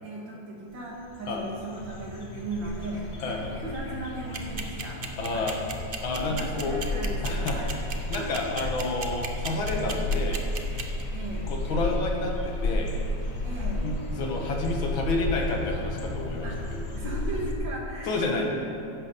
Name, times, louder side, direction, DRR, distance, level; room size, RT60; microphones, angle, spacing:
voice 1, 0.0-5.0 5.3-5.5 6.1-8.8 11.1-11.5 13.4-13.9 16.4-16.6 16.9-18.5, right 1 dB, 65° right, -3 dB, 3.0 m, -37 dB
sound 1, 0.7-0.8 1.0-17.5, left 1 dB, 40° left, 1.1 m, -32 dB
sound 2, 4.3-11.0, right 6 dB, 50° right, 0.6 m, -34 dB
voice 2, 5.2-5.6 6.0-6.8 7.2-7.6 8.1-10.4 11.5-12.9 13.8-16.8 18.1-18.5, left 2 dB, 85° left, 0 dB, 2.2 m, -30 dB
14.5 x 11.0 x 4.1 m, 2.5 s
omnidirectional pair, 2.1 m